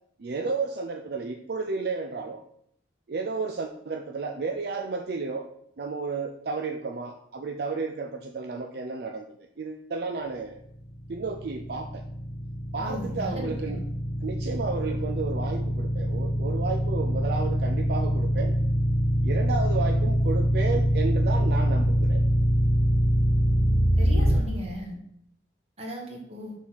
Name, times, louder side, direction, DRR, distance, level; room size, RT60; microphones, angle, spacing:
voice 1, 0.2-2.4 3.1-5.5 5.8-10.6 11.1-12.1 12.7-13.8 14.2-18.6 19.2-22.3, right 4 dB, 60° right, 5 dB, 0.4 m, -32 dB
sound 1, 11.0-24.3, equal, 55° left, 1.2 m, -24 dB
voice 2, 12.8-13.8 24.0-25.0 25.8-26.5, equal, 35° right, 0 dB, 1.6 m, -37 dB
5.8 x 4.0 x 6.2 m, 0.71 s
head